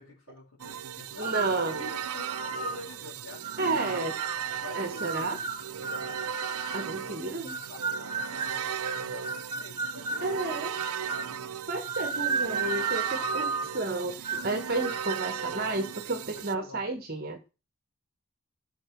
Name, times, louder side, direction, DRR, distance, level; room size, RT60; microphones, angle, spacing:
voice 1, 0.0-4.0 4.6-6.2 7.0-11.7 13.3-13.8 16.3-16.8, left 3 dB, 75° left, 5.2 m, -46 dB
sound 1, 0.6-16.5, right 8 dB, 90° right, 0.6 m, -36 dB
sound 2, 1.2-1.6 2.2-2.8 3.4-4.4 5.0-6.9 7.5-10.3 10.8-11.3 11.8-13.8 14.2-14.5 14.8-15.2, right 4 dB, 20° right, 0.8 m, -34 dB
voice 2, 1.2-1.7 3.6-4.1 4.7-5.4 6.7-7.5 10.2-10.7 11.7-17.4, right 3 dB, 40° right, 1.4 m, -31 dB
14.0 x 6.9 x 6.0 m
head